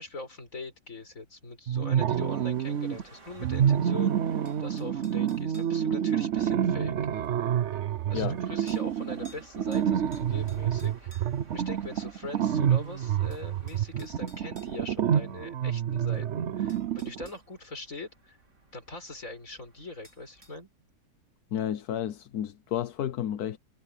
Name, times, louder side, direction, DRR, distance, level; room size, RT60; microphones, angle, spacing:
voice 1, 0.0-7.0 8.1-18.4 18.7-20.7, left 2 dB, 40° left, 5.8 m, -42 dB
sound 1, 1.7-3.0 3.4-17.3, right 9 dB, 65° right, 0.7 m, -28 dB
sound 2, 2.1-20.6, right 2 dB, 40° right, 4.2 m, -57 dB
sound 3, 4.4-5.8 7.2-7.3 8.7-8.9 9.2-9.4 9.7-11.5 12.8-12.9 13.3-14.7 16.1-16.2 16.7-17.4 20.0-20.6, left 1 dB, 10° right, 3.2 m, -55 dB
voice 2, 21.5-23.6, left 10 dB, 60° left, 1.2 m, -31 dB
omnidirectional pair, 2.1 m